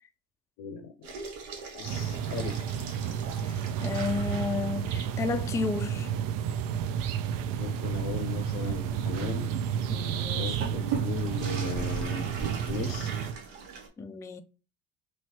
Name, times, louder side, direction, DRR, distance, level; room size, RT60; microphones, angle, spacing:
voice 1, 0.6-1.2 1.7-2.6 7.6-9.5 10.3-12.3 12.7-13.2, left 5 dB, 65° left, 0.6 m, -37 dB
sound 1, 1.0-4.6 5.0-5.2 5.6-5.7 6.2-13.9, right 5 dB, 80° right, 0.9 m, -40 dB
sound 2, 1.8-13.3, right 8 dB, 60° right, 0.5 m, -31 dB
voice 2, 3.4-6.1 9.9-10.8 14.0-14.4, left 4 dB, 10° left, 0.3 m, -33 dB
3.0 x 2.8 x 3.0 m
hypercardioid pair, 60°, 38 cm